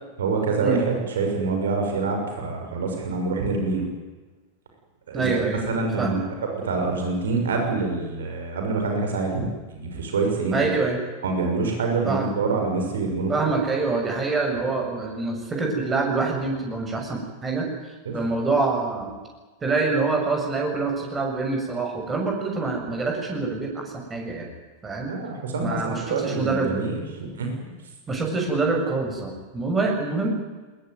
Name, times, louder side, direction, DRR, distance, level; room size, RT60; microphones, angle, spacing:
voice 1, 0.2-3.8 5.1-5.3 5.7-10.7 11.2-13.5 18.0-18.1 25.1-27.6, right 3 dB, 65° right, 3 dB, 6.3 m, -26 dB
voice 2, 5.1-5.7 6.0-6.2 10.5-11.0 12.1-12.4 13.3-19.1 19.6-24.5 24.8-25.1 25.6-26.7 28.1-30.3, right 3 dB, 20° right, 1 dB, 7.3 m, -25 dB
22.0 x 21.0 x 9.6 m, 1.3 s
figure-of-eight pair, 90°, 0 cm